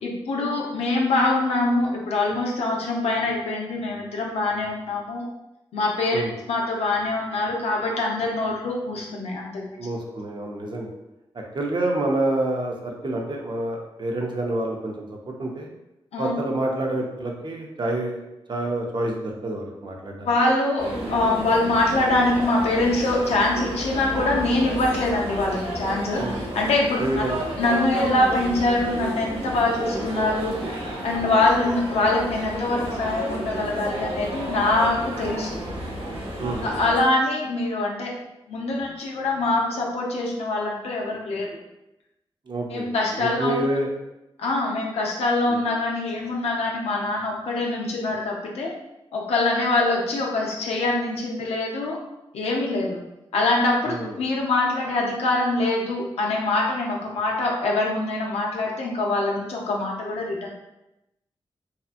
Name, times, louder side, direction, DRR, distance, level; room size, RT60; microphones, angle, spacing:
voice 1, 0.0-5.3 5.7-6.2 6.5-9.8 16.1-16.3 20.2-26.2 26.5-27.2 27.6-30.6 31.0-35.6 36.6-38.1 38.5-41.6 42.7-43.5 44.4-48.7 49.1-52.0 52.3-53.0 53.3-60.5, left 2 dB, 90° left, -2 dB, 0.5 m, -24 dB
voice 2, 9.8-10.9 11.5-15.7 16.2-18.2 18.5-20.3 26.2-26.4 27.0-27.4 36.4-36.7 42.5-43.9 45.5-45.6 53.8-54.2, right 1 dB, 50° right, 0 dB, 0.6 m, -28 dB
sound 1, 20.8-37.0, right 1 dB, 65° right, 1.3 m, -31 dB
2.8 x 2.3 x 2.4 m, 0.93 s
cardioid pair, 45°, 10 cm